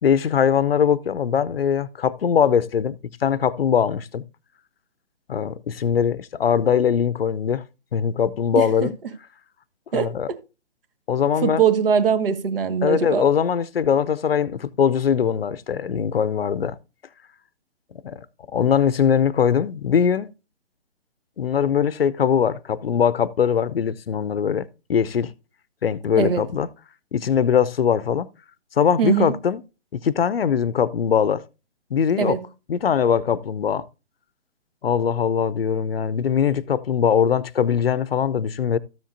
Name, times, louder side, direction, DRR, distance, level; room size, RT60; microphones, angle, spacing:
voice 1, 0.0-4.2 5.3-7.6 7.9-8.9 9.9-10.3 11.1-11.6 12.8-16.8 18.0-18.3 18.5-20.3 21.4-25.3 25.8-26.7 27.1-28.3 28.8-29.6 29.9-31.4 31.9-32.4 32.7-33.9 34.8-38.8, left 7 dB, 55° left, 0.7 m, -21 dB
voice 2, 8.5-8.9 9.9-10.4 11.4-13.3 26.2-26.4 29.0-29.3 32.2-32.4, right 7 dB, 50° right, 1.5 m, -22 dB
13.5 x 7.5 x 2.6 m
figure-of-eight pair, 145°, 36 cm